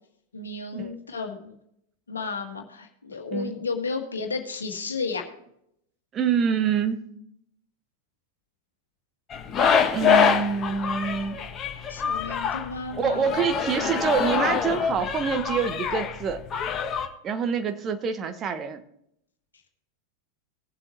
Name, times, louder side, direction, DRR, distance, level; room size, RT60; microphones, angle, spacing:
voice 1, 0.3-1.6 2.1-5.2 11.9-13.4, left 4 dB, 75° left, 4 dB, 1.7 m, -33 dB
voice 2, 6.1-7.0 9.9-11.4 13.0-16.4 17.2-18.8, right 6 dB, 25° right, 9 dB, 1.3 m, -26 dB
sound 1, 9.3-17.1, left 7 dB, 25° left, 1.4 m, -25 dB
19.0 x 7.8 x 3.0 m, 0.73 s
figure-of-eight pair, 90°, 0 cm